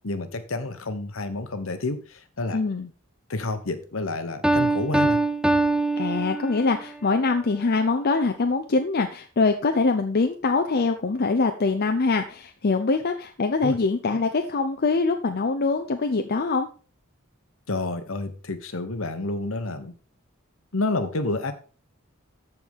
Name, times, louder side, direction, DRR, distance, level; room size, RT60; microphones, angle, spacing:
voice 1, 0.0-2.6 3.3-5.2 13.6-13.8 17.7-19.9 20.7-21.5, left 2 dB, 65° left, 9 dB, 1.1 m, -29 dB
voice 2, 2.5-2.9 6.0-16.7, left 3 dB, 45° left, 5 dB, 0.6 m, -23 dB
Piano, 4.4-6.9, right 2 dB, 5° right, 0.4 m, -23 dB
13.5 x 4.6 x 3.6 m, 0.37 s
head